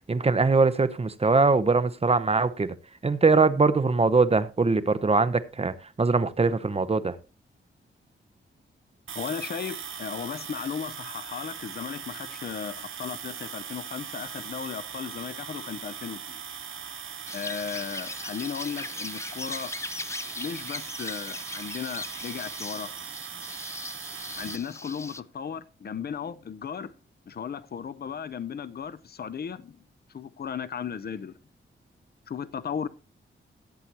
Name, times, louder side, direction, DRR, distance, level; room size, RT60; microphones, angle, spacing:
voice 1, 0.1-2.7 3.0-7.2, right 4 dB, 30° right, 0.8 m, -22 dB
voice 2, 9.1-16.4 17.3-19.7 20.4-22.9 24.4-26.9 27.3-29.8 30.1-31.4 32.3-32.9, left 7 dB, 50° left, 0.7 m, -36 dB
sound 1, 9.1-24.6, right 7 dB, 75° right, 0.9 m, -40 dB
sound 2, 17.3-25.2, left 2 dB, 15° left, 0.4 m, -39 dB
15.5 x 8.1 x 2.9 m
wide cardioid pair, 105°, 21 cm